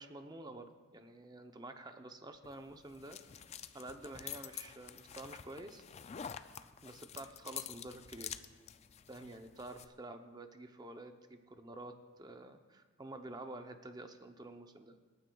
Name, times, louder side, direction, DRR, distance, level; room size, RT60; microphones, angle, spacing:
voice 1, 0.0-3.2 3.7-5.8 6.8-8.3 9.1-15.0, right 2 dB, 20° right, 6 dB, 0.6 m, -49 dB
sound 1, 2.4-9.9, left 9 dB, 30° left, 0.3 m, -48 dB
25.0 x 9.4 x 2.3 m, 1.3 s
head